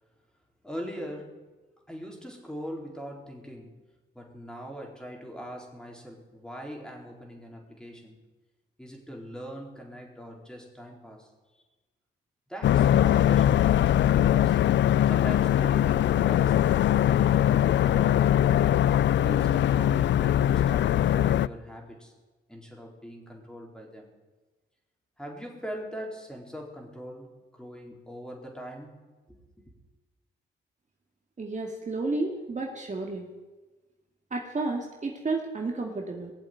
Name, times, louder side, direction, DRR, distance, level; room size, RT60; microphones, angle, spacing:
voice 1, 0.6-1.4 1.9-3.8 4.1-8.2 8.8-11.3 12.5-14.6 15.0-18.5 19.1-22.1 22.5-24.1 25.2-28.9 29.3-29.7, equal, 5° left, 0 dB, 4.2 m, -41 dB
sound 1, 12.6-21.5, left 11 dB, 65° left, 0.4 m, -22 dB
voice 2, 31.4-33.3 34.3-36.3, right 3 dB, 35° right, 1 dB, 2.1 m, -31 dB
19.0 x 7.5 x 9.2 m, 1.2 s
cardioid pair, 70°, 20 cm